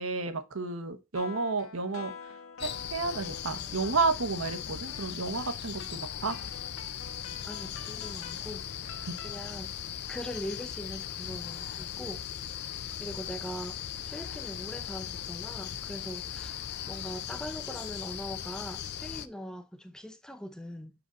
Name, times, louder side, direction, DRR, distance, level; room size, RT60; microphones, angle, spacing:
voice 1, 0.0-2.1 2.6-6.4 9.1-9.2, right 3 dB, 75° right, 1.0 m, -31 dB
sound 1, 1.1-9.6, left 5 dB, 85° left, 1.1 m, -47 dB
sound 2, 2.6-19.3, left 9 dB, 50° left, 0.5 m, -38 dB
voice 2, 7.4-9.7 10.1-13.8 14.1-20.9, equal, 5° left, 0.5 m, -42 dB
6.2 x 5.0 x 4.0 m
head